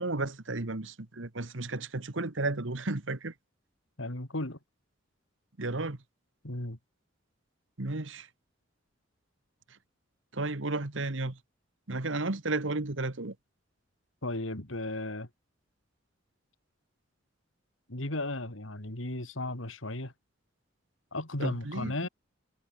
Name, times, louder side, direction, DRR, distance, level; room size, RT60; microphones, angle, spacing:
voice 1, 0.0-3.3 5.6-6.0 7.8-8.3 10.3-11.4 11.9-13.4 21.4-21.9, right 2 dB, 70° right, 1.7 m, -33 dB
voice 2, 4.0-4.6 6.4-6.8 14.2-15.3 17.9-20.1 21.1-22.1, left 2 dB, 85° left, 3.6 m, -35 dB
head